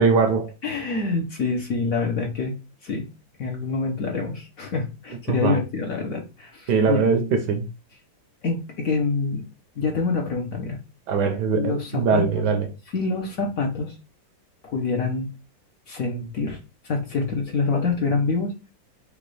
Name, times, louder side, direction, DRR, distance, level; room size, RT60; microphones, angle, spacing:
voice 1, 0.0-0.5 5.3-5.6 6.7-7.7 11.1-12.7, right 5 dB, 70° right, 1.1 m, -21 dB
voice 2, 0.6-2.5 2.8-3.1 3.4-7.1 8.4-9.4 9.8-10.8 11.5-12.4 12.9-14.0 14.6-15.3 15.9-16.6 16.8-18.5, left 4 dB, 55° left, 1.0 m, -26 dB
5.2 x 2.4 x 3.1 m
omnidirectional pair, 2.1 m